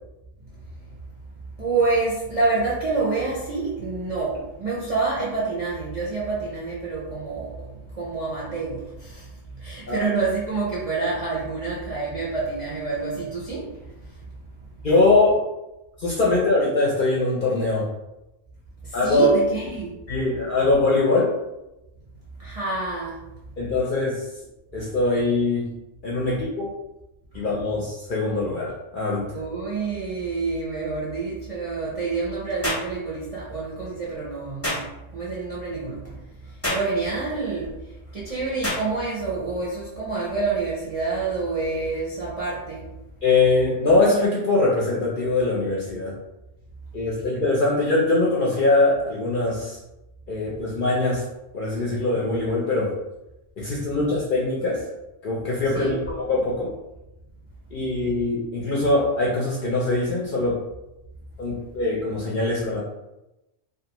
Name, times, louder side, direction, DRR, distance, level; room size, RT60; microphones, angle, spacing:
voice 1, 1.6-7.5 8.0-9.2 9.6-13.7 19.0-19.9 22.4-23.2 29.3-36.2 36.7-37.7 38.1-42.8 55.7-56.1, right 3 dB, 45° right, -8 dB, 0.5 m, -27 dB
voice 2, 14.8-15.4 16.0-17.9 18.9-19.3 20.1-21.3 23.6-24.2 24.7-25.7 26.0-26.7 27.3-29.2 43.2-46.1 46.9-49.8 50.3-51.2 51.5-52.9 53.6-54.8 55.2-56.7 57.7-60.6 61.4-62.8, left 2 dB, 55° left, -5 dB, 0.6 m, -22 dB
sound 1, 32.6-32.9 34.6-34.9 36.6-36.9 38.6-38.9, left 1 dB, 15° left, 0.5 m, -26 dB
2.4 x 2.3 x 2.9 m, 0.95 s
omnidirectional pair, 1.3 m